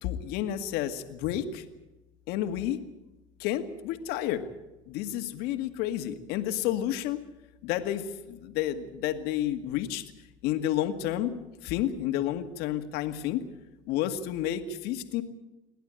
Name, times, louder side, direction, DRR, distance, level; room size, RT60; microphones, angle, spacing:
voice 1, 0.0-1.7 2.3-2.8 3.4-4.5 4.9-7.2 7.6-10.0 10.4-11.3 11.6-13.5 13.9-15.2, left 11 dB, 65° left, 7 dB, 2.0 m, -30 dB
28.5 x 11.5 x 9.0 m, 1.0 s
supercardioid pair, 95°, 18 cm